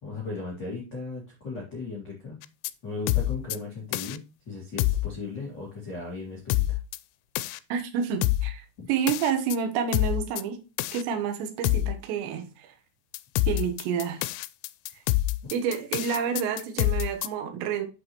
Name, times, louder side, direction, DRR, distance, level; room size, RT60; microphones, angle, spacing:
voice 1, 0.0-2.4 2.8-6.8 8.8-8.9, left 3 dB, 50° left, 1.2 m, -37 dB
sound 1, 2.4-2.7 3.1-3.6 3.9-4.2 4.8-5.1 6.5-7.0 7.4-7.6 8.2-8.5 9.1-9.6 9.9-10.4 10.8-11.0 11.6-12.0 13.1-17.3, left 17 dB, 90° left, 3.2 m, -26 dB
voice 2, 7.7-10.6 10.9-12.7 13.5-14.3 15.5-17.9, right 7 dB, 70° right, 3.0 m, -29 dB
8.0 x 6.2 x 3.0 m
omnidirectional pair, 5.8 m